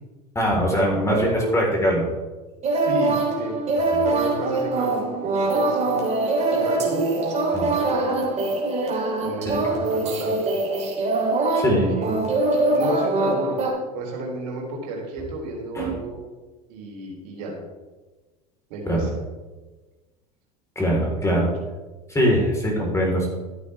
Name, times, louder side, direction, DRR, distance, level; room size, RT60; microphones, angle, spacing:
voice 1, 0.4-2.1 3.9-4.1 7.5-7.7 9.7-9.8 11.6-11.9 15.7-16.0 18.9-19.0 20.8-21.5 22.1-23.3, equal, 15° left, -1 dB, 4.0 m, -22 dB
voice 2, 1.0-1.8 2.7-3.5 4.0-6.0 6.5-7.2 7.8-8.3 9.2-10.4 11.6-12.4 12.7-13.6 13.9-16.2 16.7-17.5 18.7-19.2 21.0-21.5, right 2 dB, 75° right, -1 dB, 3.6 m, -32 dB
sound 1, 2.6-13.7, right 2 dB, 35° right, 3.4 m, -23 dB
13.5 x 8.5 x 3.4 m, 1.2 s
hypercardioid pair, 90°, 20 cm